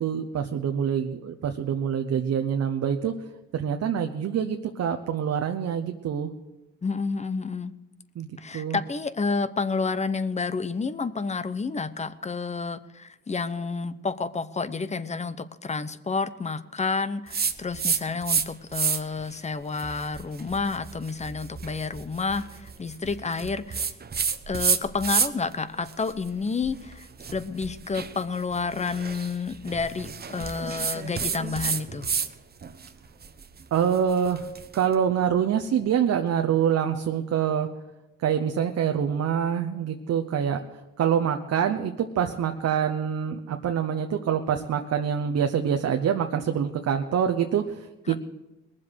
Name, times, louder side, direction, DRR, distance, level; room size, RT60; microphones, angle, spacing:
voice 1, 0.0-3.1 3.5-6.3 8.1-8.8 33.7-37.7 38.2-48.2, right 8 dB, 60° right, 5 dB, 0.9 m, -26 dB
voice 2, 6.8-7.7 8.4-23.9 24.5-27.1 27.3-32.1 48.1-48.2, left 4 dB, 25° left, 14 dB, 0.8 m, -30 dB
sound 1, 17.3-18.5 18.7-19.2 19.7-25.5 25.9-32.3 32.6-34.8, right 6 dB, 30° right, 0.9 m, -30 dB
21.0 x 7.6 x 6.4 m, 1.0 s
cardioid pair, 90°, 30 cm